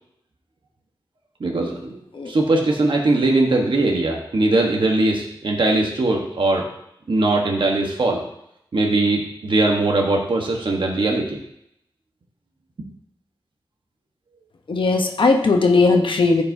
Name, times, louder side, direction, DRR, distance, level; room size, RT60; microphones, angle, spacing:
voice 1, 1.4-6.7 7.1-8.2 8.7-11.4, right 2 dB, 70° right, 0 dB, 1.2 m, -20 dB
voice 2, 14.7-16.4, left 3 dB, 75° left, 4 dB, 1.0 m, -17 dB
13.5 x 5.3 x 2.7 m, 0.76 s
wide cardioid pair, 70°, 9 cm